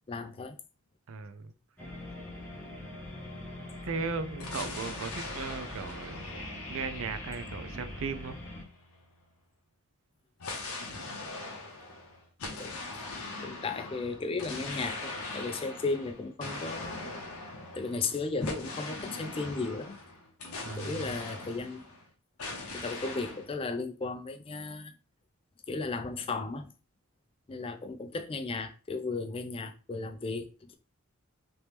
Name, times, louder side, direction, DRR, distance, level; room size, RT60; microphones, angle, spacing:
voice 1, 0.1-0.6 12.6-17.1 17.8-20.0 20.8-22.0 22.7-24.9 25.7-26.7 27.5-30.8, left 3 dB, 25° left, 0.3 m, -35 dB
voice 2, 1.1-1.5 3.8-6.2 6.7-8.4 20.6-21.1, right 4 dB, 70° right, 0.4 m, -37 dB
sound 1, 1.8-8.6, left 1 dB, 10° left, 0.9 m, -43 dB
sound 2, 4.4-9.1 10.4-22.0 22.4-23.5, left 2 dB, 85° left, 0.7 m, -41 dB
3.0 x 2.9 x 3.3 m
head